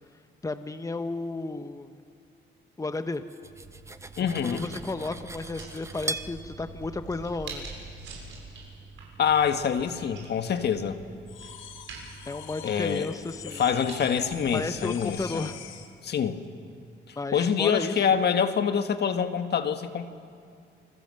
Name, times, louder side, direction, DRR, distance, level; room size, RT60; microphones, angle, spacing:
voice 1, 0.4-2.0 2.8-3.2 4.2-7.6 12.3-13.6 14.5-15.6 17.2-18.0, left 3 dB, 15° left, 9 dB, 1.1 m, -33 dB
Cutlery silverware, 3.1-6.3, right 2 dB, 15° right, 1.2 m, -38 dB
sound 1, 3.4-15.5, right 3 dB, 75° right, 7.6 m, -45 dB
voice 2, 4.2-4.6 9.2-11.0 12.6-13.1 13.5-15.5 16.0-16.4 17.1-20.1, left 7 dB, 55° left, 8 dB, 1.7 m, -26 dB
sound 2, 11.3-16.0, left 9 dB, 85° left, 1.8 m, -44 dB
28.5 x 21.0 x 7.8 m, 2.4 s
cardioid pair, 90°, 20 cm